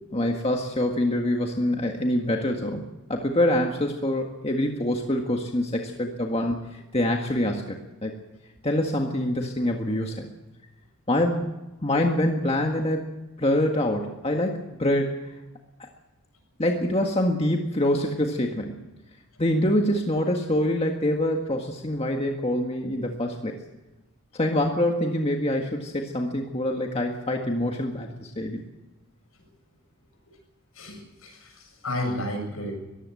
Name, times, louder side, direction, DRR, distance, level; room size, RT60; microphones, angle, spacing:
voice 1, 0.1-7.8 8.0-8.2 8.6-10.3 11.1-11.5 11.8-13.0 13.4-15.2 15.8-15.9 16.6-18.9 19.4-23.6 24.3-28.6, left 1 dB, 25° left, 2 dB, 1.8 m, -25 dB
voice 2, 30.7-32.8, left 1 dB, 75° left, 4 dB, 7.6 m, -32 dB
22.0 x 16.0 x 7.7 m, 1.0 s
head